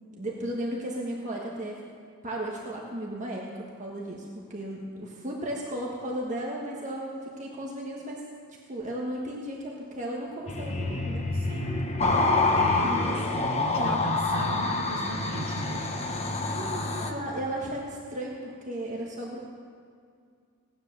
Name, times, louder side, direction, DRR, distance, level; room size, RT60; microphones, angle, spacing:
voice 1, 0.2-1.8 2.2-3.5 3.8-8.2 8.7-11.2 12.8-13.2 13.6-14.0 16.4-19.5, right 1 dB, 35° right, -3 dB, 1.6 m, -35 dB
sound 1, 10.5-17.1, left 3 dB, 30° left, 1.2 m, -27 dB
voice 2, 11.3-12.5 12.8-12.9 13.1-16.0, right 2 dB, 65° right, 4 dB, 0.8 m, -38 dB
17.5 x 9.9 x 6.8 m, 2.2 s
head